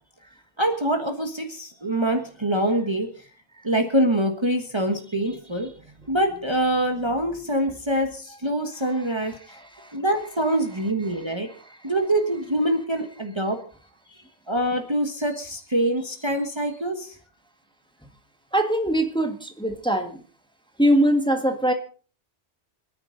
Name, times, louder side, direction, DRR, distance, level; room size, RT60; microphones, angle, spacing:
voice 1, 0.6-3.1 3.6-5.7 6.1-9.6 9.9-11.5 11.8-13.6 14.5-17.1, right 1 dB, 25° right, 4 dB, 1.4 m, -25 dB
voice 2, 9.5-9.9 11.6-11.7 18.5-20.2 20.8-21.7, equal, 5° left, 5 dB, 1.6 m, -22 dB
27.0 x 9.9 x 3.9 m, 0.40 s
omnidirectional pair, 1.2 m